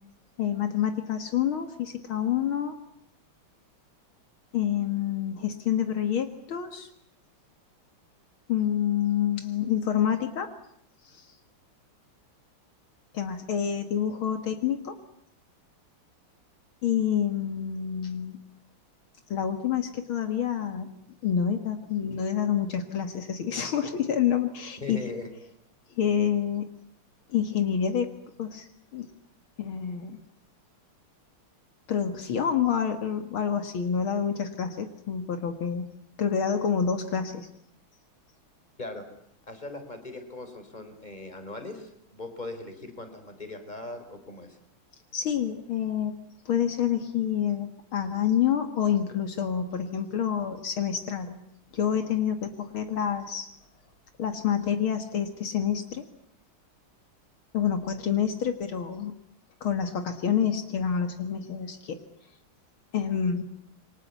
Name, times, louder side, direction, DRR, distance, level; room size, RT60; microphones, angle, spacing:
voice 1, 0.4-2.7 4.5-6.9 8.5-10.5 11.0-11.3 13.1-15.0 16.8-18.4 19.3-20.9 21.2-25.0 26.0-26.7 27.3-28.1 28.4-29.1 29.6-30.2 31.9-35.9 36.2-37.5 45.1-46.2 46.5-51.4 51.7-53.5 54.2-56.0 57.5-59.1 59.6-62.0 62.9-63.4, left 8 dB, 70° left, 8 dB, 2.4 m, -28 dB
voice 2, 24.8-25.3 38.8-39.0 39.5-44.6, left 2 dB, 20° left, 8 dB, 4.0 m, -39 dB
28.0 x 23.5 x 8.3 m, 0.71 s
omnidirectional pair, 2.4 m